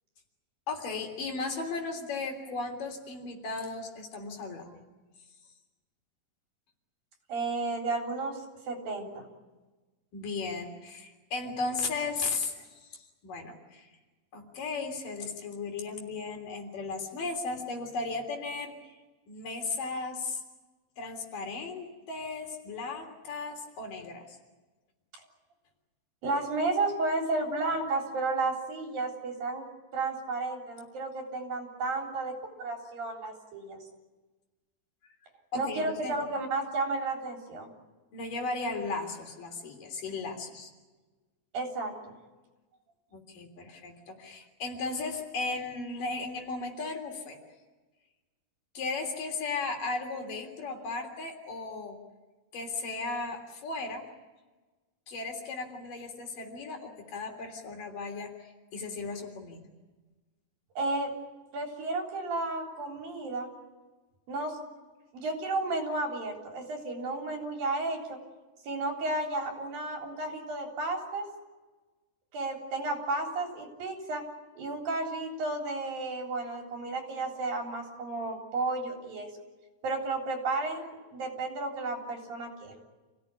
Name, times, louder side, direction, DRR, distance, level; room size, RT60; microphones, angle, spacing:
voice 1, 0.7-4.8 10.1-13.9 14.3-18.7 19.3-20.4 21.0-24.3 35.5-36.1 38.1-40.7 43.1-47.4 48.7-52.0 52.5-54.0 55.1-59.7, left 3 dB, 70° left, 3 dB, 4.9 m, -36 dB
voice 2, 7.3-8.4 8.7-9.3 26.2-29.7 29.9-33.8 35.5-37.7 41.5-42.1 60.8-61.1 61.5-63.5 64.3-64.6 65.1-68.2 68.7-71.3 72.3-74.3 74.6-79.3 79.8-82.7, right 3 dB, 85° right, 2 dB, 5.5 m, -32 dB
28.0 x 17.0 x 9.9 m, 1.2 s
omnidirectional pair, 4.0 m